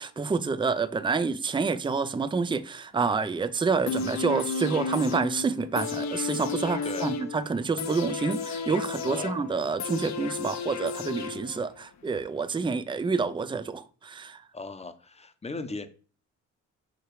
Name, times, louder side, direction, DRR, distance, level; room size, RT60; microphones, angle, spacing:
voice 1, 0.0-14.4, right 4 dB, 15° right, 0.6 m, -28 dB
sound 1, 3.9-11.8 12.2-12.3, left 4 dB, 60° left, 1.1 m, -33 dB
voice 2, 14.5-15.9, left 3 dB, 20° left, 1.0 m, -37 dB
6.3 x 5.0 x 4.8 m
cardioid pair, 90°, 30 cm